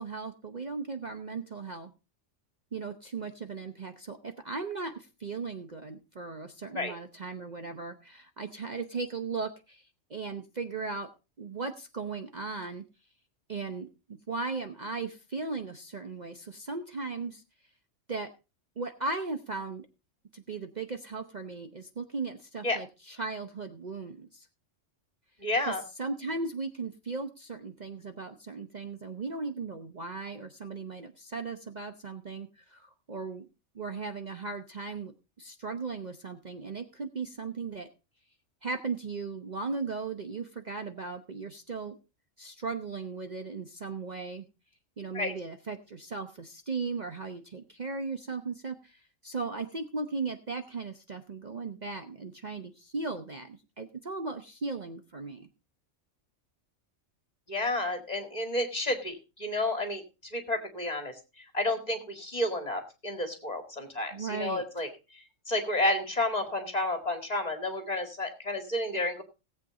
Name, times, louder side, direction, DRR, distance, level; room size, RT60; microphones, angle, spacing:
voice 1, 0.0-1.9 2.7-11.1 11.4-12.8 13.5-17.4 18.1-18.3 18.8-19.9 20.3-24.5 25.6-33.5 33.7-35.1 35.4-37.9 38.6-42.0 42.4-44.5 45.0-55.5 64.1-64.6, right 4 dB, 40° right, 6 dB, 0.9 m, -37 dB
voice 2, 25.4-25.8 45.1-45.3 57.5-60.0 60.3-64.9 65.1-69.2, left 1 dB, 30° left, 5 dB, 2.0 m, -31 dB
18.0 x 8.0 x 3.7 m, 0.30 s
omnidirectional pair, 1.3 m